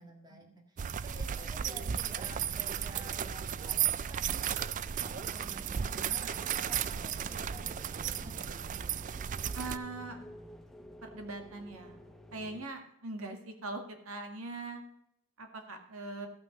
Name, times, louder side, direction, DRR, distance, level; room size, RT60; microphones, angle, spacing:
voice 1, 0.0-4.7 5.0-8.5, equal, 20° right, 2 dB, 1.8 m, -51 dB
sound 1, 0.8-9.8, right 9 dB, 35° right, 0.3 m, -34 dB
sound 2, 4.8-12.7, equal, ahead, 0.8 m, -51 dB
voice 2, 9.6-10.2 11.0-12.0 12.3-14.8 15.4-16.3, right 2 dB, 70° right, 5 dB, 1.9 m, -41 dB
15.0 x 6.0 x 6.5 m, 0.76 s
head